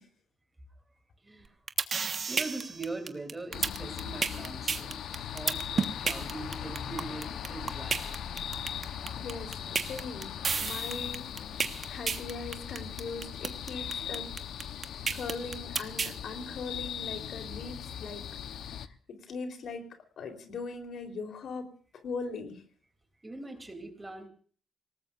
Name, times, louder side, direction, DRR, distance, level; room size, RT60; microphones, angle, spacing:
voice 1, 1.2-1.5 2.0-5.0 5.3-8.0 8.9-9.0 23.2-24.3, right 2 dB, 15° right, 6 dB, 3.1 m, -41 dB
sound 1, 1.4-16.1, right 5 dB, 45° right, 1.4 m, -31 dB
sound 2, 3.5-18.9, left 9 dB, 80° left, 1.0 m, -39 dB
voice 2, 9.2-9.5 9.8-10.3 10.6-11.3 11.9-14.3 15.1-18.2 18.5-19.9 20.2-21.7 22.0-22.6, left 4 dB, 65° left, 6 dB, 3.9 m, -40 dB
26.0 x 19.0 x 2.6 m, 0.44 s
cardioid pair, 120°, 0 cm